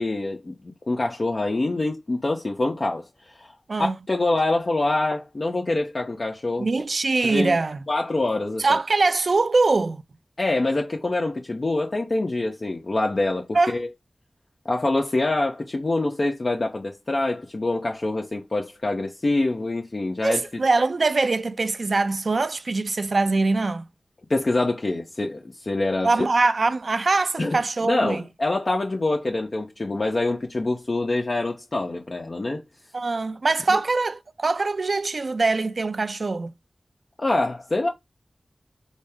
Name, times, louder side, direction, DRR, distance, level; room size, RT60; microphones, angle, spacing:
voice 1, 0.0-3.0 3.3-3.5 4.1-6.7 7.2-7.6 7.9-8.6 10.4-13.9 14.6-20.5 24.3-26.1 27.4-32.6 33.7-33.8 37.2-37.9, left 2 dB, 50° left, 0.9 m, -25 dB
voice 2, 6.6-7.8 8.6-10.0 13.5-13.7 20.2-23.8 26.0-28.2 32.9-36.5, right 3 dB, 65° right, 0.5 m, -23 dB
6.2 x 2.1 x 3.6 m
wide cardioid pair, 70°, 0 cm